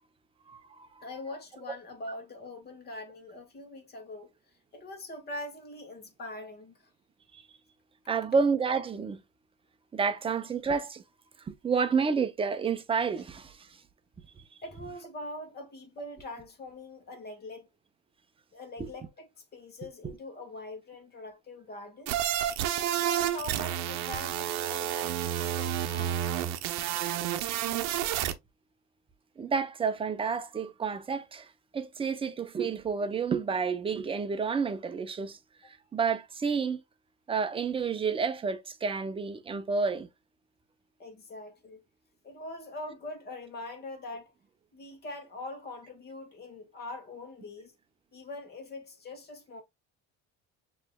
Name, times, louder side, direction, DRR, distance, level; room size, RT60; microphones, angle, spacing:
voice 1, 0.5-1.0 7.3-7.4 8.1-9.2 9.9-11.0 11.5-13.7 18.8-18.9 20.0-20.1 29.4-35.4 35.6-36.8 37.3-40.1, right 5 dB, 20° right, 0.5 m, -30 dB
voice 2, 1.0-4.3 4.7-6.7 14.6-17.7 18.5-22.3 22.8-26.2 35.6-35.7 41.0-41.8 42.2-44.3 44.7-47.7 48.1-49.6, left 2 dB, 30° left, 1.7 m, -43 dB
sound 1, 22.1-28.3, right 11 dB, 65° right, 0.7 m, -30 dB
6.5 x 3.1 x 2.2 m
cardioid pair, 140°, 30 cm